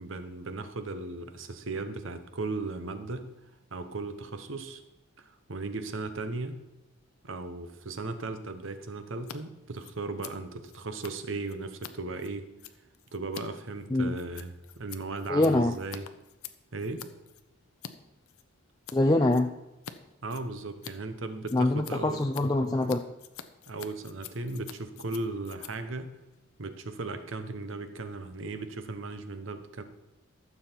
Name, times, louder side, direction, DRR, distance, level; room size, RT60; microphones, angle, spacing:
voice 1, 0.0-3.3 3.7-4.8 5.2-6.6 7.2-12.5 13.1-16.1 16.7-17.1 20.2-22.2 23.7-26.1 26.6-29.8, right 3 dB, 65° right, 10 dB, 0.9 m, -37 dB
Scissors, 9.1-9.4 9.6-17.9 18.2-19.0 19.3-19.9 20.2-27.0, left 9 dB, 90° left, 0.7 m, -47 dB
voice 2, 15.3-15.8 18.9-19.5 21.5-23.1, left 2 dB, 20° left, 3 dB, 0.4 m, -24 dB
14.0 x 7.0 x 4.5 m, 1.0 s
head